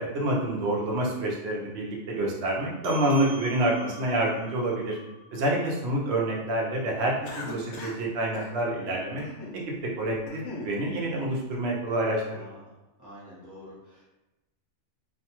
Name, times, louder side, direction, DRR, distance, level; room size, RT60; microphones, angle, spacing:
voice 1, 0.0-5.0 5.3-9.2 10.0-12.4, right 1 dB, 60° right, -2 dB, 0.9 m, -27 dB
sound 1, 2.8-7.6, right 2 dB, 90° right, 1.0 m, -47 dB
Cough, 7.2-8.0 8.3-8.5 9.2-9.6 10.0-10.7, left 2 dB, 70° left, 0.8 m, -39 dB
voice 2, 8.8-9.3 12.2-12.7 13.0-14.0, equal, 15° right, -8 dB, 0.8 m, -48 dB
2.6 x 2.2 x 2.9 m, 1.0 s
omnidirectional pair, 1.3 m